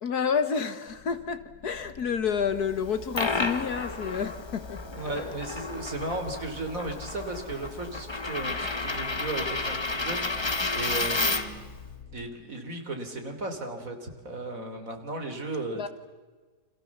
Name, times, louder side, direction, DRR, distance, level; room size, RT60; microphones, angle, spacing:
voice 1, 0.0-4.8 15.7-15.9, left 6 dB, 65° left, 11 dB, 1.9 m, -29 dB
sound 1, 0.9-12.3, left 6 dB, 85° left, 1.8 m, -48 dB
Coin (dropping), 2.8-11.7, left 3 dB, 20° left, 1.0 m, -31 dB
voice 2, 4.9-11.7 12.1-15.9, right 2 dB, 50° right, 5 dB, 3.8 m, -35 dB
29.5 x 26.5 x 7.3 m, 1.4 s
omnidirectional pair, 1.8 m